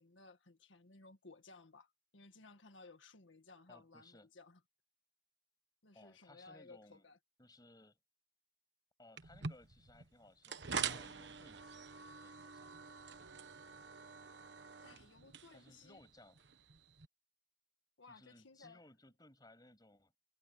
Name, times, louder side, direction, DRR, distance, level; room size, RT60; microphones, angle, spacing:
voice 1, 0.0-4.6 5.8-7.2 14.8-16.0 18.0-18.8, left 3 dB, 90° left, 1.7 m, -59 dB
voice 2, 3.7-4.3 5.9-7.0 7.4-8.0 9.0-11.9 12.2-12.7 15.5-16.4 18.1-20.1, left 1 dB, 20° left, 7.3 m, -62 dB
sound 1, 9.2-17.1, right 6 dB, 65° right, 1.2 m, -46 dB
head